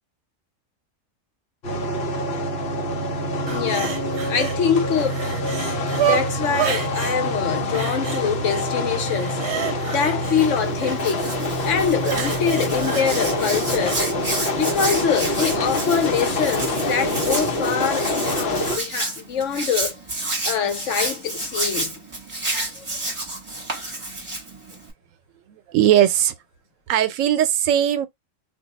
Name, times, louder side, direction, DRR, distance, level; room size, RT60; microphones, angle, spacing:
sound 1, 1.6-18.8, left 1 dB, 55° left, 1.0 m, -25 dB
voice 1, 3.4-5.2 6.0-11.3 11.6-14.0 14.5-20.0 20.4-22.0 22.5-22.9, left 7 dB, 75° left, 1.1 m, -25 dB
sound 2, 3.5-4.6 4.9-7.2 7.7-8.6 9.0-11.0 12.0-14.0 14.5-14.6, right 9 dB, 55° right, 0.9 m, -29 dB
Hands, 10.3-24.9, right 2 dB, 25° right, 1.2 m, -30 dB
voice 2, 25.5-26.3 26.9-28.1, right 11 dB, 90° right, 1.0 m, -19 dB
2.5 x 2.3 x 3.9 m
omnidirectional pair, 1.3 m